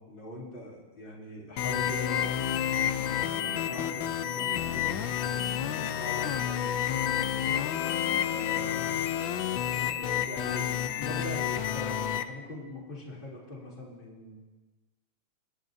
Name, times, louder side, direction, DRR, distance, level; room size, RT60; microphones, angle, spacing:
voice 1, 0.0-2.4 2.7-7.6 8.2-8.9 9.7-14.4, left 1 dB, 25° left, -6 dB, 3.0 m, -42 dB
sound 1, 1.6-12.2, left 10 dB, 70° left, 1.3 m, -30 dB
28.5 x 10.5 x 2.7 m, 1.3 s
omnidirectional pair, 2.4 m